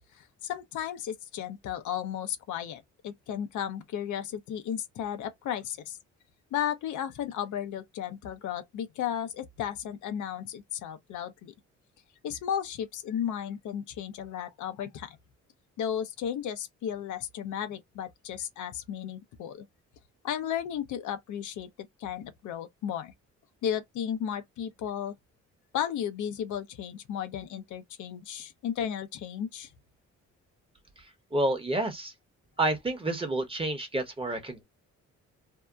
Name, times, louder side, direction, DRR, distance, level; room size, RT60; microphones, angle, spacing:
voice 1, 0.1-6.0 6.5-11.5 12.2-15.2 15.8-19.7 20.2-21.7 22.0-23.1 23.6-25.1 25.7-29.7, left 9 dB, 80° left, 0.7 m, -34 dB
voice 2, 31.3-32.1 32.6-34.6, right 1 dB, 20° right, 0.9 m, -29 dB
2.7 x 2.2 x 2.3 m
cardioid pair, 90°, 30 cm